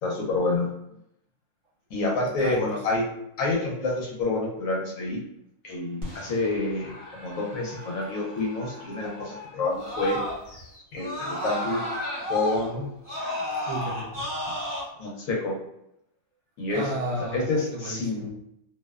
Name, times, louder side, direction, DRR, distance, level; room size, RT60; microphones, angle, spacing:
voice 1, 0.0-0.7 1.9-3.0 3.4-5.2 5.6-10.2 10.5-11.8 12.3-12.9 15.0-15.5 16.6-16.9 17.3-18.3, left 2 dB, 85° left, -1 dB, 1.1 m, -28 dB
voice 2, 2.4-2.8 13.7-14.6 16.7-18.3, right 1 dB, 65° right, -2 dB, 0.9 m, -34 dB
Screaming, 6.0-10.6 11.0-14.8, left 1 dB, 25° right, 0.9 m, -33 dB
2.7 x 2.1 x 2.3 m, 0.79 s
omnidirectional pair, 1.4 m